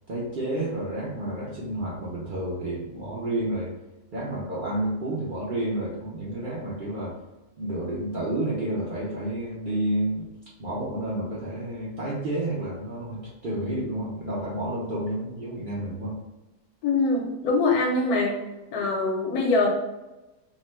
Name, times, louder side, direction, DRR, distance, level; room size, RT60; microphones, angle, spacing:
voice 1, 0.1-3.7 4.1-7.2 7.6-10.3 10.6-16.2, right 1 dB, 60° right, -6 dB, 0.5 m, -30 dB
voice 2, 16.8-18.4 18.7-19.7, left 3 dB, 80° left, 0 dB, 1.2 m, -23 dB
2.8 x 2.1 x 3.1 m, 1.0 s
omnidirectional pair, 1.6 m